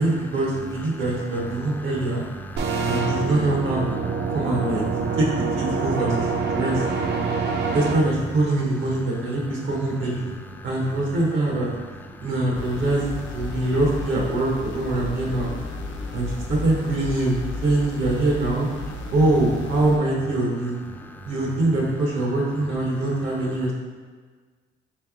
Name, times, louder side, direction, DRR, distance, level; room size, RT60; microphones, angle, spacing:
voice 1, 0.0-2.2 2.8-3.8 4.3-4.8 5.2-6.8 7.7-10.3 10.6-11.7 12.2-13.1 13.3-15.5 16.1-18.7 19.1-20.8 21.3-23.7, right 2 dB, 75° right, -2 dB, 0.9 m, -23 dB
voice 2, 0.9-1.9 2.4-3.3 3.9-4.4 4.9-5.2 6.5-6.6 7.2-7.8 10.6-10.7 12.1-12.3 13.5-13.7 15.7-16.3 19.0-19.1 20.9-21.3 23.5-23.7, equal, 10° left, 4 dB, 0.3 m, -40 dB
sound 1, 2.6-7.9, right 4 dB, 60° right, 0.5 m, -26 dB
sound 2, 12.5-20.0, left 3 dB, 70° left, 0.6 m, -34 dB
3.4 x 3.2 x 3.5 m, 1.5 s
cardioid pair, 90°, 20 cm